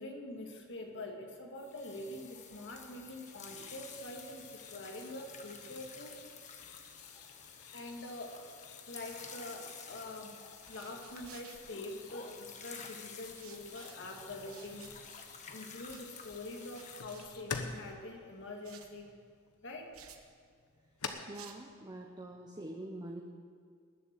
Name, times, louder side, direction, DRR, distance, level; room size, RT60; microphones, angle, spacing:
voice 1, 0.0-6.2 7.7-8.4 8.9-10.4 10.7-15.0 15.5-19.1 19.6-19.9, left 1 dB, 60° left, 2 dB, 2.0 m, -45 dB
sound 1, 1.6-17.0, left 6 dB, 35° left, 1.2 m, -51 dB
sound 2, 3.2-21.1, left 5 dB, 85° left, 1.2 m, -50 dB
sound 3, 10.5-12.4 13.2-17.9 18.6-19.0 19.9-20.3 21.3-21.8, right 8 dB, 70° right, 1.2 m, -57 dB
voice 2, 21.3-23.2, right 1 dB, 20° right, 2 dB, 0.9 m, -45 dB
19.5 x 7.4 x 7.6 m, 2.1 s
head